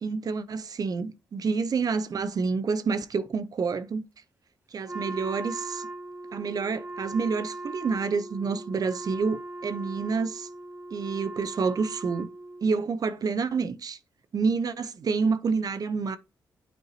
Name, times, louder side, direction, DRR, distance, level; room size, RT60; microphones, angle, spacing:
voice 1, 0.0-4.0 4.7-5.9 6.3-10.5 10.9-12.3 12.6-14.0 14.3-16.2, right 5 dB, 55° right, 0.7 m, -28 dB
Wind instrument woodwind instrument, 4.9-12.8, right 2 dB, 25° right, 0.9 m, -39 dB
9.0 x 4.5 x 2.8 m
supercardioid pair, 50°, 8 cm